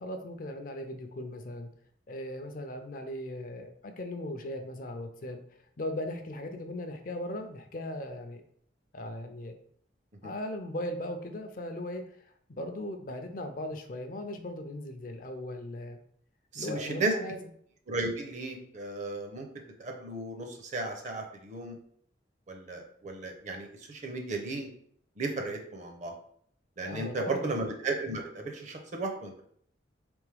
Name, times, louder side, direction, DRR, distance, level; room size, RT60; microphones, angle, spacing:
voice 1, 0.0-1.7 2.1-5.4 5.8-8.4 8.9-9.5 10.2-16.0 16.6-17.4 26.8-27.5, left 1 dB, 50° left, 6 dB, 0.5 m, -38 dB
voice 2, 16.5-17.1 17.9-19.5 19.8-21.7 22.5-24.7 25.2-26.1 26.8-29.4, right 2 dB, 40° right, 3 dB, 0.7 m, -34 dB
3.5 x 3.4 x 3.3 m, 0.65 s
head